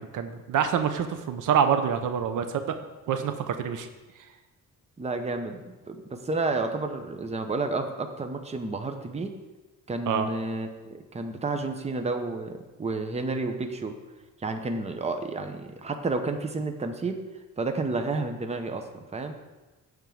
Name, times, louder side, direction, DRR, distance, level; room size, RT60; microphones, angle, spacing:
voice 1, 0.0-2.7 3.1-3.9 10.1-10.3, right 7 dB, 70° right, 8 dB, 0.7 m, -26 dB
voice 2, 5.0-9.3 9.9-14.0 14.4-17.2 17.6-19.3, right 3 dB, 20° right, 6 dB, 0.8 m, -31 dB
9.1 x 3.7 x 7.1 m, 1.2 s
cardioid pair, 105°, 32 cm